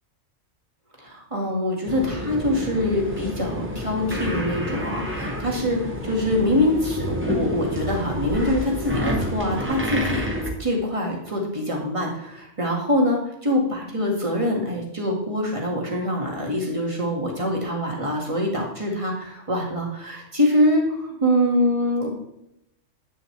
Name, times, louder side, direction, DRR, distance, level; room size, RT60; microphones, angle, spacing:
voice 1, 1.0-10.3 10.6-22.1, left 1 dB, 25° right, -1 dB, 2.0 m, -24 dB
sound 1, 1.9-10.5, equal, 10° right, 1.3 m, -29 dB
9.6 x 6.5 x 3.3 m, 0.82 s
omnidirectional pair, 1.3 m